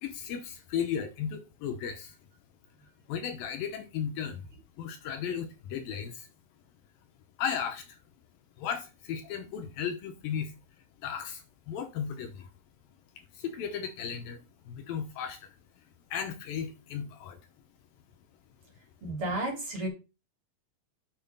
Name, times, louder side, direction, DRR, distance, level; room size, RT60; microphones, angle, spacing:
voice 1, 0.0-2.2 3.1-4.4 4.8-6.3 7.4-8.0 8.6-10.5 11.0-12.5 13.2-15.6 16.1-17.4, left 8 dB, 75° left, 2.5 m, -35 dB
voice 2, 19.0-19.9, right 1 dB, 35° right, 4.0 m, -32 dB
6.9 x 6.7 x 5.4 m
omnidirectional pair, 4.5 m